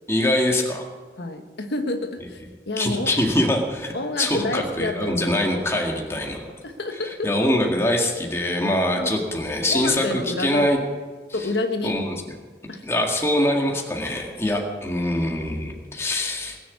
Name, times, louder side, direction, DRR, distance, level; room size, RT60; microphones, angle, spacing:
voice 1, 0.1-0.9 2.8-6.5 7.0-10.8 11.4-11.5 11.8-12.2 12.8-16.6, left 1 dB, 15° left, 0 dB, 2.0 m, -23 dB
voice 2, 1.2-2.4 2.7-3.1 3.9-5.3 6.6-7.3 8.9-9.1 9.7-10.7 11.3-12.0 12.7-12.8, left 2 dB, 80° left, 5 dB, 1.4 m, -28 dB
20.5 x 7.1 x 8.5 m, 1.5 s
head